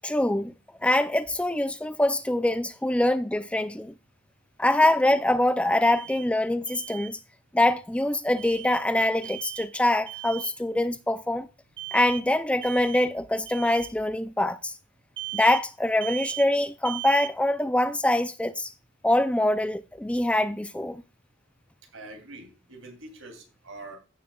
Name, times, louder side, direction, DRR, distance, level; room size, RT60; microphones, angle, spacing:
voice 1, 0.0-0.5 0.8-3.9 4.6-7.2 7.5-11.5 11.9-14.7 15.3-18.7 19.0-21.0, left 1 dB, 5° left, 0.3 m, -24 dB
Alarm, 5.8-6.3 6.7-7.1 8.4-8.8 9.2-9.7 10.1-10.6 11.8-12.3 12.6-13.1 13.5-13.9 15.2-15.7 16.0-16.5 16.9-17.3, right 19 dB, 25° right, 1.1 m, -38 dB
voice 2, 21.9-24.0, right 2 dB, 85° right, 3.0 m, -44 dB
15.5 x 6.5 x 2.3 m
head